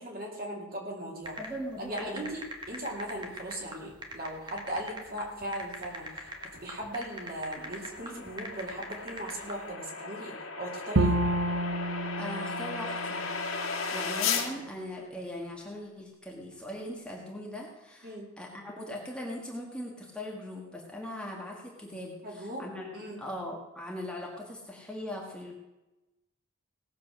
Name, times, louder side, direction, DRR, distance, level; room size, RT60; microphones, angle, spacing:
voice 1, 0.0-1.4 1.8-6.3 6.6-11.2 18.0-18.3 22.2-22.7 22.9-23.2, right 1 dB, 45° right, -1 dB, 3.0 m, -38 dB
sound 1, 1.2-9.6, right 1 dB, 20° right, 1.5 m, -42 dB
voice 2, 1.4-2.2 12.1-13.3 13.7-25.5, left 1 dB, 5° left, -2 dB, 1.6 m, -40 dB
sound 2, 6.0-14.5, left 5 dB, 80° left, 1.9 m, -36 dB
Bowed string instrument, 11.0-14.1, right 1 dB, 65° right, 0.9 m, -30 dB
18.0 x 7.3 x 6.1 m, 1.0 s
head